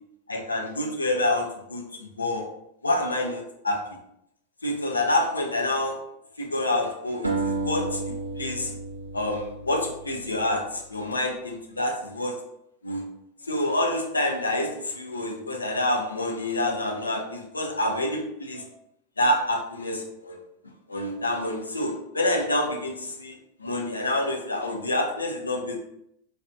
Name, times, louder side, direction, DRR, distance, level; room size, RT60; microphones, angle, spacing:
voice 1, 0.3-1.8 2.2-2.4 2.8-3.8 4.6-6.0 6.4-8.7 9.1-12.3 12.8-13.0 13.5-18.6 19.2-20.4 20.9-23.3 23.6-25.7, left 1 dB, 80° left, 1 dB, 0.5 m, -27 dB
sound 1, 7.2-10.5, right 3 dB, 80° right, 0.5 m, -32 dB
4.1 x 2.5 x 2.2 m, 0.76 s
figure-of-eight pair, 90°, 0 cm